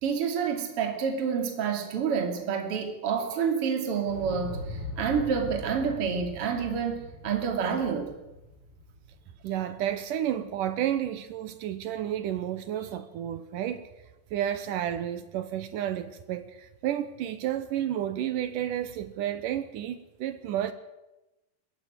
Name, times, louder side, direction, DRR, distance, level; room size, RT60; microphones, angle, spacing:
voice 1, 0.0-8.1, right 6 dB, 35° right, 3.1 m, -28 dB
Explosion, 4.0-10.1 10.4-10.5, left 1 dB, 30° left, 6.8 m, -41 dB
voice 2, 9.4-13.9 14.3-20.7, right 11 dB, 75° right, 2.0 m, -31 dB
21.0 x 15.5 x 9.3 m
omnidirectional pair, 4.9 m